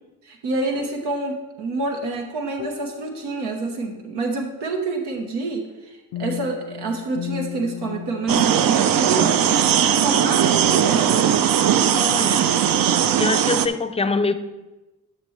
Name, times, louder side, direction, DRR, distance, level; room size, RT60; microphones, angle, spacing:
voice 1, 0.2-9.5 9.9-11.3, right 3 dB, 85° right, 1 dB, 1.1 m, -27 dB
sound 1, 0.8-1.0 2.6-3.7 6.1-9.8, left 11 dB, 65° left, 0.5 m, -36 dB
sound 2, 8.3-13.7, right 9 dB, 55° right, 0.6 m, -19 dB
voice 2, 11.9-12.5 13.2-14.3, left 4 dB, 15° left, 11 dB, 0.5 m, -24 dB
10.5 x 5.9 x 3.2 m, 1.1 s
cardioid pair, 75°, 40 cm